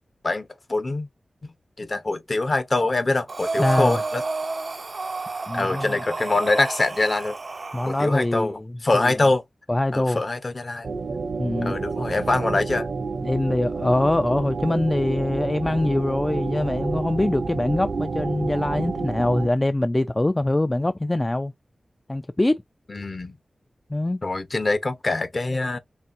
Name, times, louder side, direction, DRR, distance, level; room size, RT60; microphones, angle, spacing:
voice 1, 0.2-1.1 1.4-4.2 5.5-7.4 7.9-9.4 9.9-10.9 11.6-12.9 22.9-23.4 24.2-25.8, left 2 dB, 45° left, 0.9 m, -24 dB
Breathing, 3.3-8.2, right 3 dB, 50° right, 0.5 m, -30 dB
voice 2, 3.6-4.0 5.5-6.0 7.7-8.6 8.9-9.1 9.7-10.2 11.4-11.8 13.2-21.5 22.1-22.6 23.9-24.2, left 1 dB, 25° left, 0.3 m, -23 dB
sound 1, 10.8-19.5, right 4 dB, 75° right, 0.7 m, -29 dB
4.3 x 3.4 x 2.5 m
wide cardioid pair, 60°, 0 cm